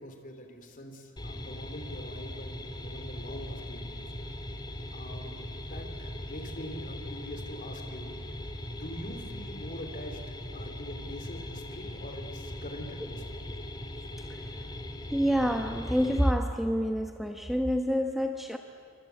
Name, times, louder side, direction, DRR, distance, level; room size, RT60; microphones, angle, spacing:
voice 1, 0.0-4.0 4.9-8.2 8.7-13.4, equal, 40° left, 5 dB, 3.3 m, -44 dB
sound 1, 1.2-16.3, left 1 dB, 20° left, 1.7 m, -40 dB
voice 2, 15.1-18.6, equal, ahead, 4 dB, 1.0 m, -27 dB
28.0 x 24.5 x 8.4 m, 2.2 s
head